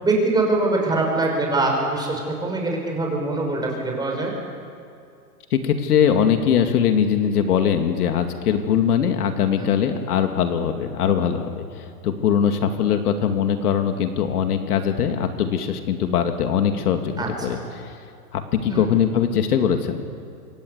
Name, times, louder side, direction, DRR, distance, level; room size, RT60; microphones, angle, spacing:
voice 1, 0.0-4.3 9.5-9.7 17.2-17.6 18.6-18.8, right 2 dB, 10° right, 0 dB, 6.3 m, -23 dB
voice 2, 5.5-17.2 17.4-17.9 18.3-20.0, left 8 dB, 70° left, 6 dB, 2.6 m, -21 dB
27.0 x 22.5 x 8.3 m, 2.5 s
hypercardioid pair, 135°, 47 cm